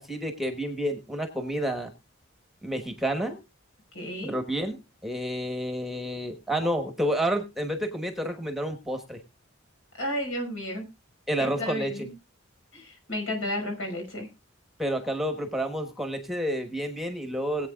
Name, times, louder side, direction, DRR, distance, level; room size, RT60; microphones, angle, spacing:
voice 1, 0.0-1.9 2.6-3.4 4.2-9.2 11.3-11.9 14.8-17.7, equal, ahead, 7 dB, 1.1 m, -30 dB
voice 2, 3.9-4.4 9.9-10.9 11.4-12.1 12.7-14.3, left 1 dB, 75° left, 4 dB, 5.2 m, -32 dB
21.0 x 8.3 x 2.3 m, 0.24 s
head